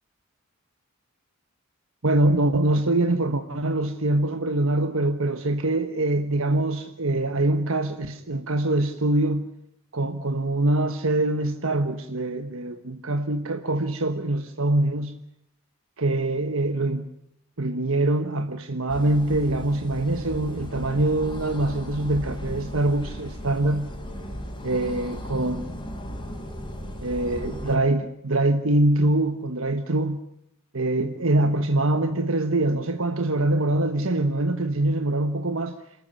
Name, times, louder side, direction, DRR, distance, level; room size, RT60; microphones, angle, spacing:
voice 1, 2.0-9.5 9.9-15.1 16.0-17.1 17.6-23.9 24.6-25.6 27.0-30.2 30.7-35.7, right 2 dB, 75° right, 1.3 m, -24 dB
sound 1, 18.9-27.8, equal, 25° left, 4.6 m, -36 dB
27.0 x 14.5 x 9.7 m
head